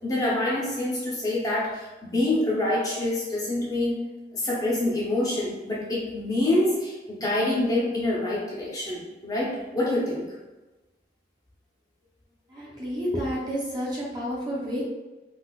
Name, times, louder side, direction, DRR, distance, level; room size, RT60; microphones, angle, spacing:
voice 1, 0.0-4.0 4.3-10.2, left 1 dB, 20° left, -6 dB, 0.6 m, -26 dB
voice 2, 12.5-14.8, equal, 25° right, -6 dB, 0.7 m, -30 dB
3.9 x 2.4 x 2.3 m, 1.1 s
head